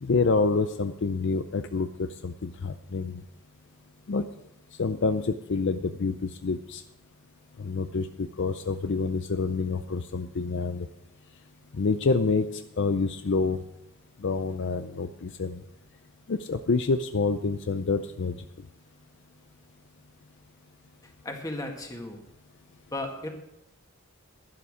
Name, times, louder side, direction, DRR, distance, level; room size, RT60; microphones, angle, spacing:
voice 1, 0.0-3.2 4.1-4.3 4.8-6.8 7.6-10.9 11.7-13.6 14.2-15.6 16.3-18.4, left 4 dB, 55° left, 9 dB, 0.5 m, -27 dB
voice 2, 21.2-22.2 22.9-23.3, left 1 dB, 15° left, 2 dB, 1.8 m, -34 dB
11.5 x 11.0 x 5.0 m, 0.87 s
head